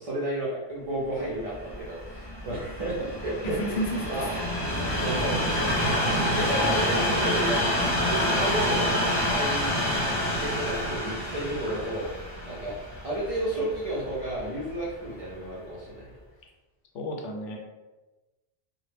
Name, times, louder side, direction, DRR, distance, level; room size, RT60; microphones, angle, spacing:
voice 1, 0.0-3.8 4.1-4.4 5.0-5.4 6.1-12.1 12.4-12.8 13.0-16.1, right 1 dB, 65° right, -7 dB, 0.3 m, -32 dB
Train, 1.4-14.6 15.3-15.4, equal, 25° left, 0.4 m, -28 dB
voice 2, 3.4-3.8 4.2-4.3 16.9-17.6, equal, 85° left, 0 dB, 0.9 m, -31 dB
2.1 x 2.1 x 3.2 m, 1.1 s
omnidirectional pair, 1.2 m